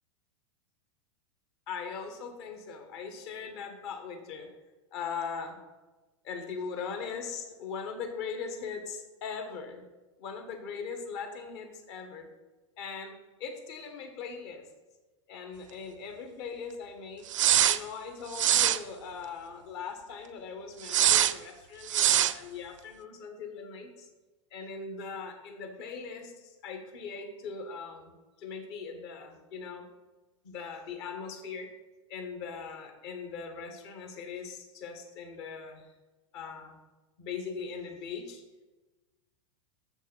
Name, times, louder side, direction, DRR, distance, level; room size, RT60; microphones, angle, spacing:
voice 1, 1.7-4.5 4.9-5.6 6.2-9.8 10.2-12.3 12.8-14.6 15.3-17.3 17.7-24.1 24.5-28.1 28.4-29.9 30.4-31.7 32.1-35.9 36.3-36.8 37.2-38.4, left 5 dB, 55° left, 5 dB, 1.6 m, -40 dB
sound 1, 17.3-17.8 18.3-18.8 20.8-21.3 21.9-22.3, right 11 dB, 75° right, 0.5 m, -23 dB
7.4 x 6.4 x 6.2 m, 1.2 s
hypercardioid pair, 95°, 16 cm